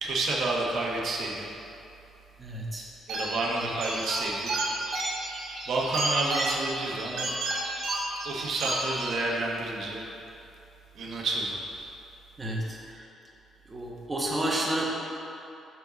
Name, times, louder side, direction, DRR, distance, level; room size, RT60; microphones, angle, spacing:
voice 1, 0.0-1.5 3.1-4.5 5.7-7.3 8.2-10.0 10.9-11.6, right 2 dB, 60° right, -3 dB, 1.0 m, -30 dB
voice 2, 2.4-2.9 12.4-13.0 13.7-14.8, right 1 dB, 20° right, -3 dB, 1.0 m, -31 dB
sound 1, 3.1-9.1, right 2 dB, 80° right, 1.3 m, -32 dB
6.9 x 4.8 x 4.0 m, 2.8 s
cardioid pair, 125°, 0 cm